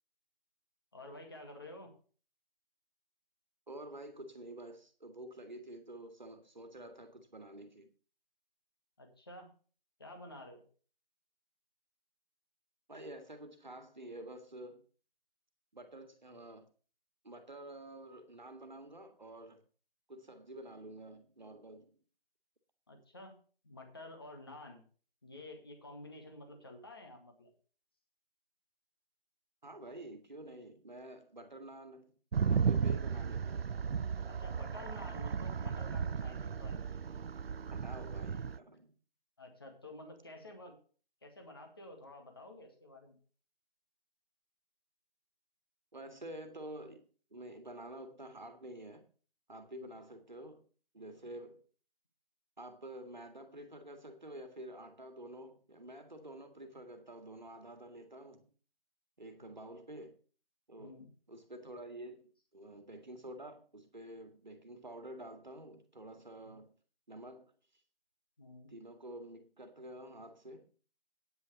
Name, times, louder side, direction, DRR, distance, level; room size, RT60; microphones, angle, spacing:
voice 1, 0.9-1.9 9.0-9.5 10.0-10.6 22.9-23.3 23.6-24.8 25.2-27.5 34.3-36.8 39.4-40.7 41.2-43.2 49.7-49.9 60.8-61.1 66.4-66.5 68.4-68.7, left 1 dB, 25° left, 2.1 m, -50 dB
voice 2, 3.7-7.9 12.9-14.8 15.7-16.7 17.2-19.6 20.1-22.0 29.6-32.1 32.5-33.7 37.7-38.9 45.9-47.1 47.3-49.0 49.5-50.6 50.9-51.6 52.6-58.5 59.2-60.2 60.7-61.0 61.3-66.7 67.1-67.5 68.7-70.7, right 1 dB, 50° right, 2.0 m, -49 dB
sound 1, 32.3-38.6, right 6 dB, 80° right, 0.5 m, -35 dB
9.7 x 6.9 x 7.0 m
figure-of-eight pair, 170°, 29 cm